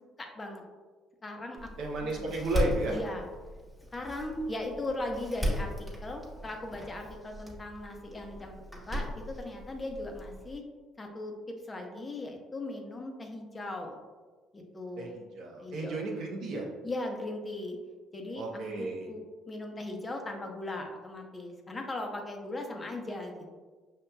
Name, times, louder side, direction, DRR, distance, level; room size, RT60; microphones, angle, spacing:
voice 1, 0.2-0.6 1.2-1.7 2.0-2.3 2.9-3.3 3.9-8.6 8.9-10.6 11.0-14.0 14.5-15.2 15.6-16.0 16.8-17.8 18.1-18.4 18.8-23.5, left 2 dB, 30° left, 2 dB, 0.7 m, -38 dB
Door, 1.6-10.6, equal, ahead, 1.1 m, -37 dB
voice 2, 1.8-3.0 15.0-16.7 18.4-19.1, right 2 dB, 70° right, -1 dB, 0.6 m, -33 dB
5.2 x 2.8 x 2.3 m, 1.4 s
supercardioid pair, 70°, 0 cm